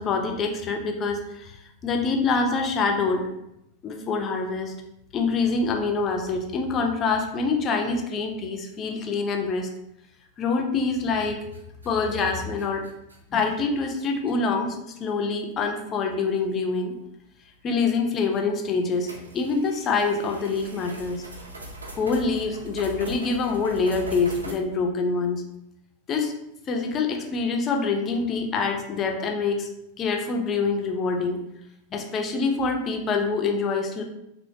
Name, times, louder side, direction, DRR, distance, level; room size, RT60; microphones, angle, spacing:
voice 1, 0.0-1.6 1.8-3.2 3.8-4.7 5.1-9.7 10.4-11.4 11.8-12.8 13.3-16.9 17.6-19.1 19.3-21.2 22.0-25.4 26.1-26.3 26.7-29.7 30.0-31.4 31.9-34.0, left 4 dB, 30° left, 3 dB, 0.4 m, -25 dB
sound 1, 11.0-11.2 11.5-13.4 14.3-14.4 15.0-15.1 16.4-16.5 18.3-18.4 19.0-24.5, right 1 dB, 80° right, 0.4 m, -41 dB
2.9 x 2.0 x 2.6 m, 0.83 s
figure-of-eight pair, 90°, 0 cm